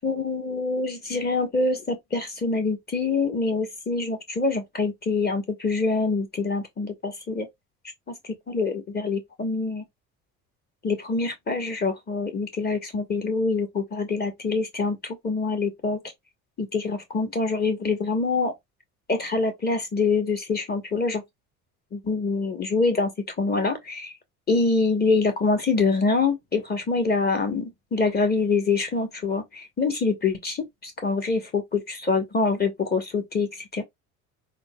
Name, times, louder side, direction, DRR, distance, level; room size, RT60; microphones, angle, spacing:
voice 1, 0.0-7.5 8.5-9.8 10.8-16.0 16.6-18.5 19.1-21.2 21.9-23.1 23.4-24.1 24.5-33.8, left 4 dB, 25° left, 1.0 m, -25 dB
3.7 x 2.0 x 2.2 m
hypercardioid pair, 65°, 41 cm